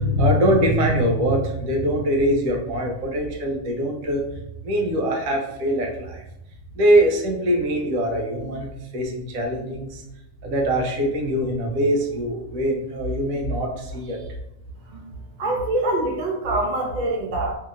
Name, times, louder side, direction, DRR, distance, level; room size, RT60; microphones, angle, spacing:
voice 1, 0.0-4.2 4.6-6.2 6.7-10.0 10.4-14.2, equal, 85° right, 1 dB, 1.1 m, -22 dB
voice 2, 15.4-17.6, right 2 dB, 50° right, -1 dB, 0.6 m, -24 dB
2.8 x 2.7 x 2.4 m, 0.82 s
omnidirectional pair, 1.4 m